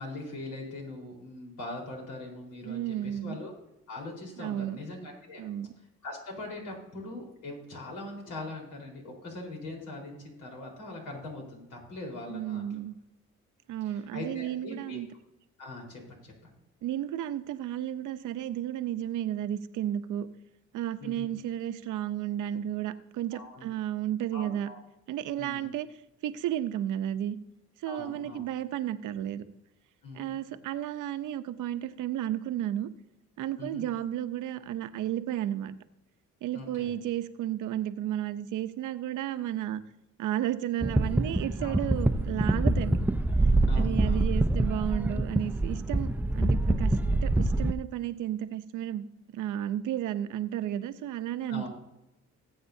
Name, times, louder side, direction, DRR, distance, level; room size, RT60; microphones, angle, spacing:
voice 1, 0.0-3.5 3.9-5.4 6.0-12.7 14.1-15.0 15.6-16.5 21.0-21.2 23.3-23.7 24.3-24.8 25.4-25.7 27.8-28.4 30.0-30.4 33.6-33.8 36.5-36.9 41.6-41.8 43.7-44.3 51.5-51.7, left 2 dB, 85° left, 0 dB, 4.2 m, -41 dB
voice 2, 2.6-3.4 4.4-4.8 5.4-5.7 12.3-13.0 13.7-15.1 16.8-20.3 20.7-24.7 25.1-25.9 26.2-27.4 27.8-29.4 30.1-32.9 33.4-35.8 36.4-39.8 40.2-43.0 43.8-47.0 47.2-49.0 49.3-51.7, right 11 dB, 85° right, 11 dB, 0.8 m, -33 dB
sound 1, 40.8-47.7, right 2 dB, 5° right, 0.4 m, -25 dB
20.0 x 8.1 x 2.7 m, 0.90 s
cardioid pair, 90°, 30 cm